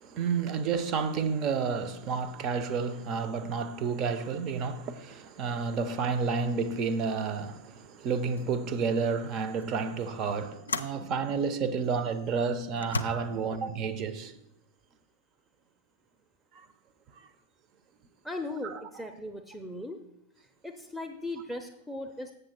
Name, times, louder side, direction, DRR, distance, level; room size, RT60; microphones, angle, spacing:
voice 1, 0.0-14.3 16.6-16.7 18.6-18.8, right 5 dB, 35° right, 0.6 m, -30 dB
sound 1, 7.8-7.9 8.4-8.6 9.6-9.7 10.7-11.0 11.8-12.0 12.8-13.1, left 3 dB, 75° left, 0.4 m, -34 dB
voice 2, 18.2-20.0 20.6-22.3, left 2 dB, ahead, 0.6 m, -38 dB
7.6 x 6.5 x 4.4 m
figure-of-eight pair, 90°, 0 cm